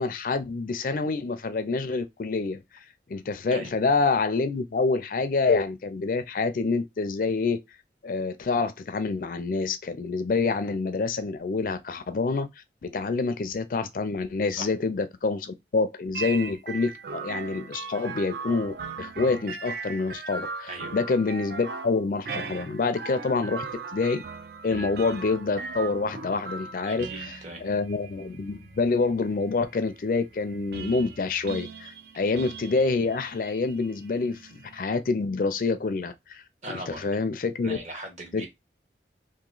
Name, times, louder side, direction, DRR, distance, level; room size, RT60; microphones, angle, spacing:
voice 1, 0.0-2.8 3.1-7.6 8.0-12.5 12.8-23.7 23.9-24.2 24.6-37.8 38.3-38.5, left 4 dB, 50° left, 0.4 m, -27 dB
sound 1, 16.1-34.8, right 4 dB, 60° right, 0.4 m, -39 dB
voice 2, 26.9-27.6 36.6-37.0 37.6-38.5, right 1 dB, 40° right, 1.2 m, -39 dB
2.9 x 2.6 x 3.8 m
head